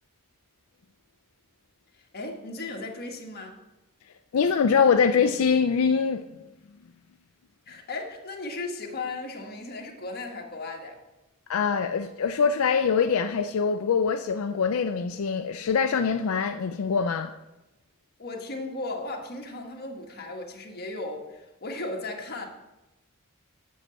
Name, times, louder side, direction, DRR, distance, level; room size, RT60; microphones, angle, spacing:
voice 1, 1.9-3.6 7.7-11.0 18.2-22.5, left 2 dB, 50° left, 1.5 m, -36 dB
voice 2, 4.3-6.4 11.5-17.4, left 6 dB, 85° left, 0.4 m, -24 dB
7.8 x 6.5 x 7.6 m
head